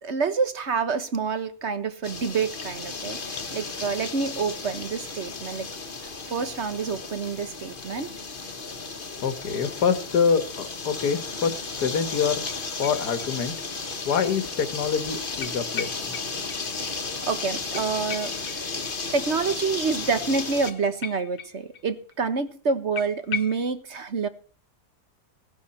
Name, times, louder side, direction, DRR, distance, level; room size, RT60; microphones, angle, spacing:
voice 1, 0.0-5.7 6.0-8.1 16.9-18.7 19.1-24.3, right 5 dB, 45° right, 1.4 m, -28 dB
sound 1, 2.0-20.7, left 4 dB, 35° left, 1.4 m, -34 dB
voice 2, 9.2-12.4 12.8-13.5 14.1-16.2, left 6 dB, 70° left, 2.0 m, -26 dB
sound 2, 12.5-13.6 13.9-14.0 15.4-16.6 16.8-16.9 17.2-17.3 17.7-19.2 20.7-21.9 22.1-22.2 22.5-22.6 22.9-23.7, left 7 dB, 55° left, 0.8 m, -38 dB
17.5 x 12.0 x 4.3 m
omnidirectional pair, 1.8 m